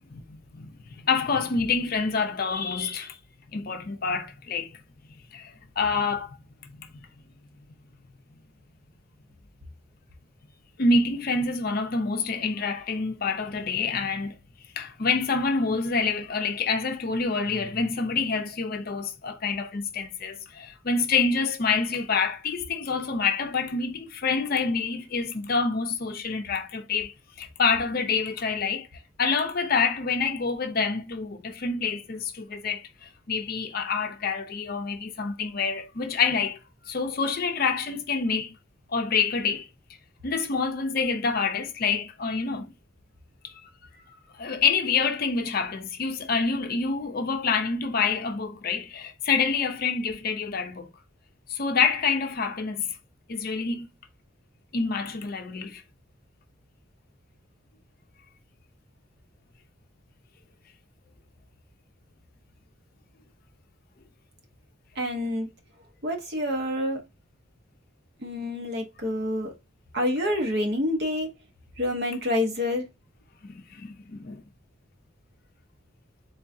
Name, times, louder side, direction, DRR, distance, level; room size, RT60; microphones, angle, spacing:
voice 1, 0.1-3.2 3.5-4.8 5.3-6.4 6.6-6.9 10.8-14.4 14.8-28.9 29.2-36.6 36.8-38.6 38.9-39.7 40.2-42.7 43.4-43.7 44.3-50.9 51.5-53.0 53.3-53.9 54.7-55.8 73.4-74.4, left 4 dB, 45° left, 0.5 m, -27 dB
voice 2, 65.0-65.5 66.0-67.0 68.2-69.5 69.9-71.3 71.8-72.9, left 1 dB, 50° right, 0.9 m, -27 dB
3.8 x 3.5 x 2.7 m
head